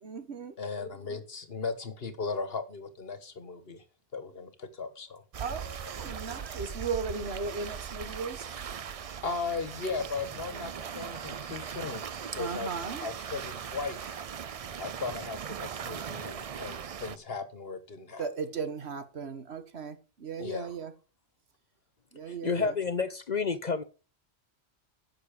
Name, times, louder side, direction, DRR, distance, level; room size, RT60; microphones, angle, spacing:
voice 1, 0.0-0.5 5.4-8.5 12.3-13.1 18.2-20.9 22.1-22.7, right 5 dB, 70° right, 10 dB, 1.6 m, -36 dB
voice 2, 0.6-3.8 4.1-5.2 9.2-12.1 12.4-12.7 13.0-14.2 14.8-18.2 20.4-20.7 22.6-22.7, left 4 dB, 60° left, 11 dB, 1.6 m, -37 dB
sound 1, 5.3-17.2, right 7 dB, 45° right, 0.5 m, -39 dB
voice 3, 22.4-23.8, left 5 dB, 45° left, 13 dB, 0.7 m, -29 dB
10.5 x 7.0 x 5.1 m, 0.34 s
omnidirectional pair, 1.1 m